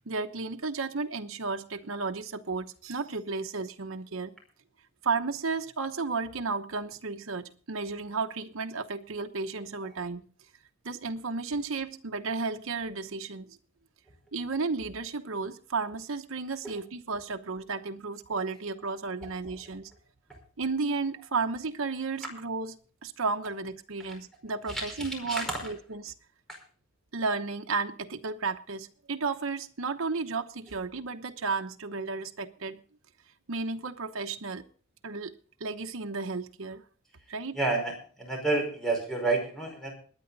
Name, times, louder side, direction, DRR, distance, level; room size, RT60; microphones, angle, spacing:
voice 1, 0.1-4.4 5.0-10.2 10.8-13.6 14.3-19.9 20.6-22.7 23.0-26.1 27.1-32.8 33.5-34.7 35.0-36.8 37.3-37.6, right 4 dB, 75° right, 1.0 m, -33 dB
voice 2, 24.7-25.6 26.5-26.6 37.5-39.9, right 3 dB, ahead, 4.9 m, -30 dB
21.5 x 9.6 x 4.0 m
head